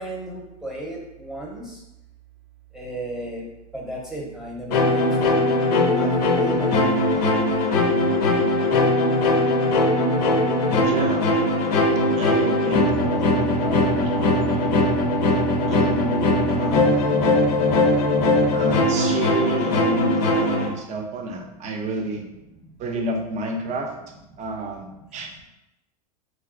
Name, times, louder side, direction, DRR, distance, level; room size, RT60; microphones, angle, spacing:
voice 1, 0.0-1.8 2.7-3.5 3.7-5.4 5.9-7.9 22.5-22.8 24.3-24.4, right 1 dB, ahead, -2 dB, 0.8 m, -35 dB
sound 1, 4.7-20.7, left 2 dB, 70° left, 0.5 m, -20 dB
voice 2, 10.8-11.3 12.2-14.8 15.7-17.2 18.5-22.2 22.8-23.9 24.4-25.3, right 1 dB, 35° right, 3 dB, 0.6 m, -30 dB
3.2 x 2.6 x 2.5 m, 0.90 s
hypercardioid pair, 100°, 20 cm